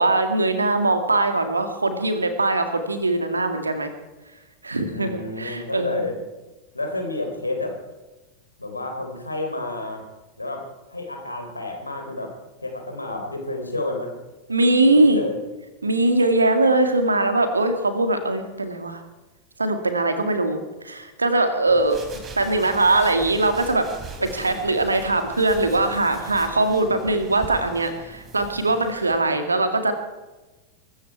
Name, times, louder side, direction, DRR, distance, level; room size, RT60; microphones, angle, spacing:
voice 1, 0.0-3.9 4.6-6.0 14.5-15.2 15.8-19.0 19.6-22.0 22.4-23.9 24.2-29.9, right 2 dB, 80° right, 8 dB, 2.0 m, -21 dB
voice 2, 4.9-6.1 6.7-7.8 8.6-10.0 10.4-10.6 10.9-12.3 12.6-14.1 14.9-15.4 24.2-24.7, left 2 dB, 85° left, 3 dB, 3.6 m, -30 dB
sound 1, 21.7-29.2, right 4 dB, 25° right, 3.4 m, -41 dB
23.0 x 13.5 x 4.7 m, 1.1 s
figure-of-eight pair, 90°, 0 cm